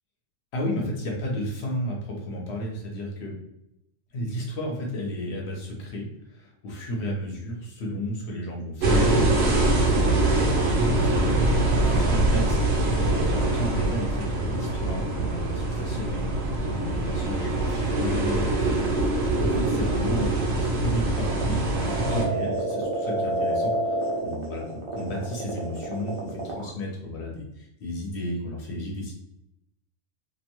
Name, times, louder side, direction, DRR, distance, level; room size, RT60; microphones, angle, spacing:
voice 1, 0.5-3.3 4.1-12.6 13.0-20.4 20.8-29.1, equal, 60° left, -1 dB, 1.0 m, -33 dB
sound 1, 8.8-22.3, right 2 dB, 65° right, 0.8 m, -24 dB
sound 2, 17.7-26.7, right 1 dB, 40° right, 0.4 m, -29 dB
2.5 x 2.2 x 2.9 m, 0.83 s
omnidirectional pair, 1.3 m